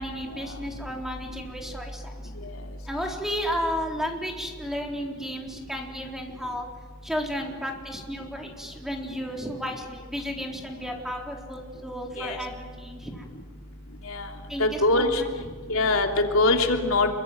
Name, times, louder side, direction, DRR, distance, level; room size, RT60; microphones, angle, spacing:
voice 1, 0.0-2.3 2.9-6.7 7.0-13.3 14.5-15.3, equal, ahead, 1 dB, 3.9 m, -33 dB
voice 2, 14.6-15.2 15.7-16.1 16.3-17.1, left 2 dB, 85° left, 3 dB, 3.0 m, -22 dB
27.0 x 23.5 x 9.4 m, 1.4 s
head